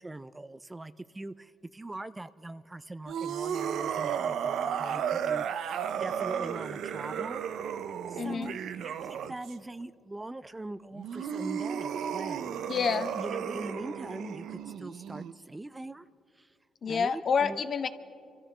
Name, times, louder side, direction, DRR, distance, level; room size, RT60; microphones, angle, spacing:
voice 1, 0.0-5.7 6.0-7.4 8.1-12.8 13.1-16.1 16.3-16.6 16.9-17.6, right 2 dB, 15° right, 14 dB, 0.3 m, -42 dB
sound 1, 3.1-9.5 10.9-15.3, right 8 dB, 75° right, 0.5 m, -34 dB
voice 2, 8.2-8.6 12.7-13.1 16.8-17.9, left 6 dB, 50° left, 11 dB, 0.7 m, -28 dB
27.5 x 13.5 x 3.3 m, 2.5 s
cardioid pair, 90°, 0 cm